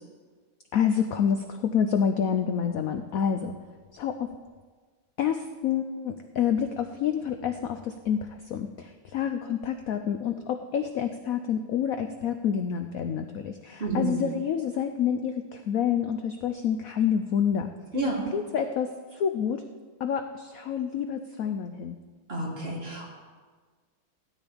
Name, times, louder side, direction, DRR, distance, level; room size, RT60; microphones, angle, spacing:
voice 1, 0.7-3.6 3.9-4.3 5.2-17.7 18.3-19.6 20.0-22.0, left 8 dB, 70° left, 7 dB, 0.8 m, -28 dB
voice 2, 13.8-14.1 17.9-18.3 22.3-23.1, right 2 dB, 30° right, -5 dB, 3.4 m, -29 dB
17.5 x 12.5 x 3.5 m, 1.4 s
omnidirectional pair, 2.1 m